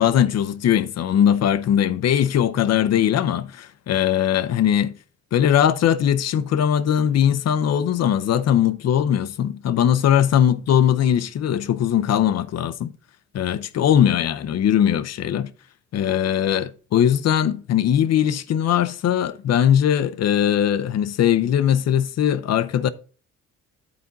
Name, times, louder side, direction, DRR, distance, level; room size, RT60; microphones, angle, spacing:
voice 1, 0.0-4.9 5.3-12.9 13.3-15.5 15.9-22.9, left 9 dB, 60° left, 0.6 m, -20 dB
9.5 x 4.2 x 4.0 m
cardioid pair, 90°, 30 cm